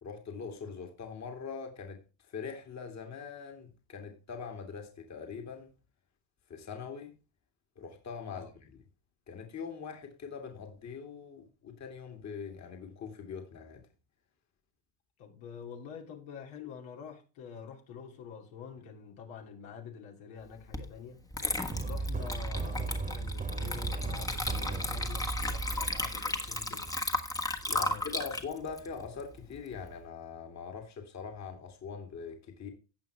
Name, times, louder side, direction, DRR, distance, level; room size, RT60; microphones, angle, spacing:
voice 1, 0.0-5.7 6.5-7.1 7.8-8.8 9.3-13.8 27.7-32.7, left 6 dB, 35° left, 2.3 m, -42 dB
voice 2, 15.2-21.2 21.8-26.9 27.6-28.2, left 7 dB, 70° left, 2.6 m, -47 dB
Water / Liquid, 20.7-20.9 21.3-29.9, left 2 dB, 5° left, 1.3 m, -35 dB
sound 1, 21.7-26.9, right 3 dB, 15° right, 1.6 m, -36 dB
16.5 x 5.7 x 3.3 m
supercardioid pair, 115°, 48 cm